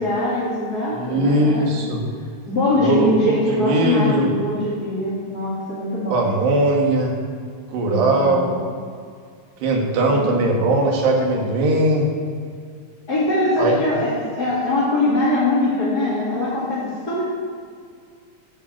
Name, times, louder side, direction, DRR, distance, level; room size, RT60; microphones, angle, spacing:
voice 1, 0.0-1.7 2.5-6.3 7.8-8.6 10.1-10.7 13.1-17.2, left 2 dB, 25° left, -10 dB, 3.0 m, -22 dB
voice 2, 0.9-2.0 2.8-4.3 6.1-7.1 7.7-8.5 9.6-12.1 13.6-13.7, right 2 dB, 75° right, 0 dB, 4.1 m, -19 dB
14.0 x 8.0 x 7.6 m, 2.2 s
omnidirectional pair, 4.9 m